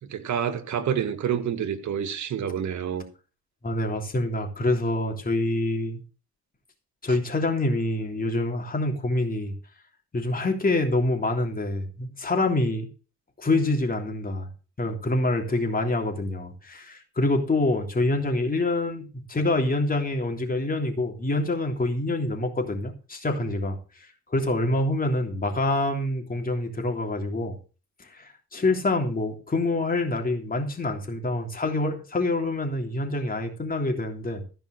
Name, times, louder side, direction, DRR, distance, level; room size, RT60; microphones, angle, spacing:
voice 1, 0.0-3.0 7.1-7.2, right 8 dB, 70° right, 1.8 m, -28 dB
voice 2, 3.6-6.0 7.0-9.5 10.1-12.9 13.4-14.5 14.8-27.6 28.0-34.4, left 2 dB, 30° left, 3.2 m, -26 dB
15.0 x 5.5 x 6.4 m
cardioid pair, 90°, 30 cm